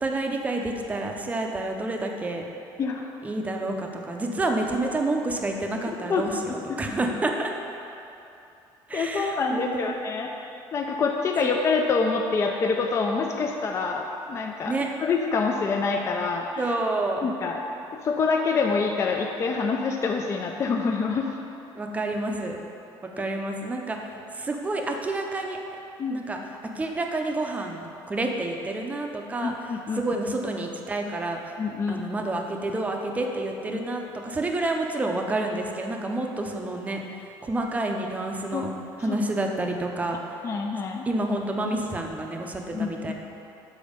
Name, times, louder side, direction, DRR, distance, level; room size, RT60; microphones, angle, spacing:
voice 1, 0.0-2.4 3.2-7.5 8.9-10.0 11.4-11.5 14.6-14.9 16.6-17.2 21.8-22.6 23.2-25.6 26.1-26.4 26.7-31.6 31.9-38.7 39.0-40.2 41.1-43.1, right 2 dB, 15° right, 2 dB, 0.6 m, -29 dB
voice 2, 2.8-3.1 6.1-6.2 8.9-10.3 10.7-14.8 15.0-16.5 17.2-17.6 18.0-21.3 26.0-26.2 29.4-30.0 31.6-32.0 38.5-38.6 39.1-39.2 40.4-41.1 42.7-43.1, left 4 dB, 30° left, 1 dB, 0.4 m, -26 dB
7.1 x 4.3 x 5.1 m, 2.8 s
cardioid pair, 145°, 9 cm